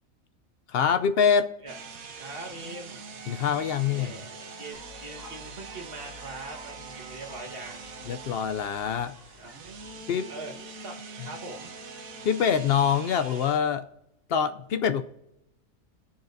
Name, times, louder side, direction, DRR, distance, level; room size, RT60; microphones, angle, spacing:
voice 1, 0.7-1.5 3.3-4.2 8.1-9.1 10.1-10.3 12.2-13.8 14.3-15.0, left 7 dB, 65° left, 9 dB, 0.6 m, -25 dB
sound 1, 1.7-13.6, right 5 dB, 80° right, 1.4 m, -43 dB
voice 2, 2.1-3.0 3.8-7.8 9.4-10.5 10.8-11.0 11.2-11.7, right 2 dB, 45° right, 0 dB, 1.6 m, -42 dB
sound 2, 4.7-10.0, left 4 dB, 45° left, 4.9 m, -51 dB
19.5 x 7.1 x 2.6 m, 0.87 s
omnidirectional pair, 1.5 m